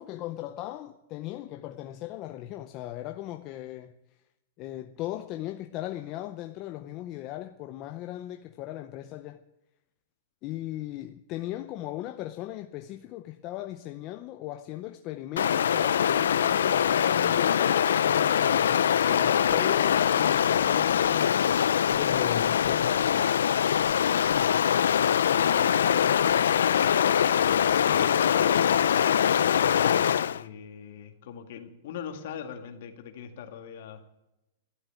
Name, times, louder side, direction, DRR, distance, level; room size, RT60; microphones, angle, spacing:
voice 1, 0.0-3.9 4.6-9.4 10.4-21.4 21.9-23.3, left 14 dB, 30° left, 0.6 m, -38 dB
Stream, 15.4-30.4, left 9 dB, 90° left, 0.5 m, -23 dB
voice 2, 25.1-27.1 27.7-29.3 29.8-34.0, left 8 dB, 50° left, 2.1 m, -40 dB
12.5 x 12.5 x 9.0 m
supercardioid pair, 165°, 0 cm